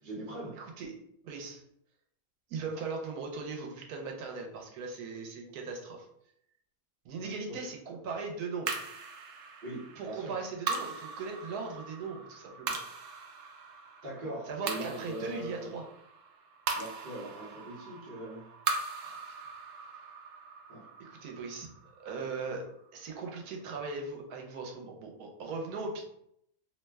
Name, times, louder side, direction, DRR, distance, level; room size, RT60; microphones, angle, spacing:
voice 1, 0.0-0.5 7.5-7.6 9.6-10.3 14.0-15.7 16.7-18.5 20.7-20.9, right 1 dB, 40° right, -6 dB, 0.9 m, -41 dB
voice 2, 0.5-0.9 1.2-1.6 2.5-6.1 7.0-8.8 10.0-12.8 14.5-15.8 19.0-19.3 21.0-22.6 22.9-26.0, right 4 dB, 90° right, 1 dB, 1.2 m, -39 dB
sound 1, 8.7-23.2, right 5 dB, 70° right, 0.8 m, -40 dB
2.8 x 2.1 x 3.3 m, 0.73 s
omnidirectional pair, 1.6 m